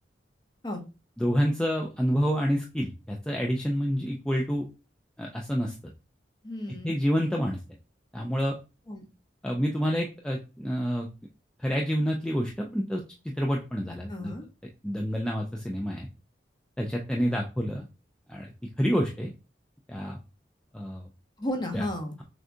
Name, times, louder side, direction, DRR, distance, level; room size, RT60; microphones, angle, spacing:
voice 1, 1.2-4.7 5.2-5.7 6.8-7.6 8.1-8.6 9.4-11.1 11.6-14.3 14.8-16.1 16.8-17.8 18.3-18.5 18.8-19.3 19.9-20.2 20.7-21.1 21.7-21.9, equal, 5° left, 0 dB, 0.4 m, -28 dB
voice 2, 6.4-7.0 8.9-9.1 14.1-14.4 21.4-22.2, left 1 dB, 25° left, 3 dB, 0.8 m, -33 dB
6.2 x 2.4 x 2.6 m, 0.31 s
head